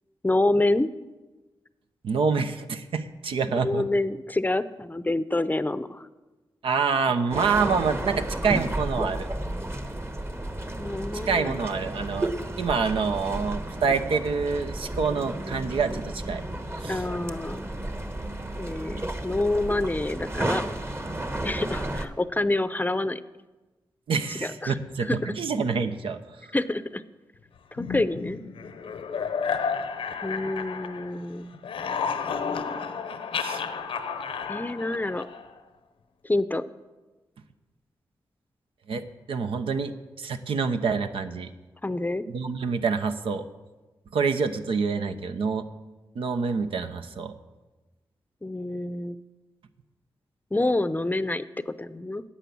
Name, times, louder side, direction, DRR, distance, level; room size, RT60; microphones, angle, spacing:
voice 1, 0.2-0.9 3.6-6.1 10.6-11.5 16.9-17.7 18.6-20.6 21.4-23.2 24.3-25.3 26.5-27.0 27.9-28.4 30.2-31.5 34.5-35.3 36.2-36.6 41.8-42.3 48.4-49.2 50.5-52.2, left 2 dB, 20° left, 14 dB, 0.6 m, -27 dB
voice 2, 2.0-3.8 6.6-9.3 11.3-16.4 16.8-17.0 24.1-26.2 33.4-33.6 38.9-41.5 42.3-43.5 44.1-45.7 46.2-47.3, right 5 dB, 80° right, 8 dB, 0.8 m, -27 dB
sound 1, 7.3-22.1, right 1 dB, 25° right, 1.2 m, -32 dB
sound 2, 27.8-31.3 31.5-35.6, left 6 dB, 85° left, 0.8 m, -32 dB
9.9 x 8.7 x 7.0 m, 1.2 s
cardioid pair, 50°, 9 cm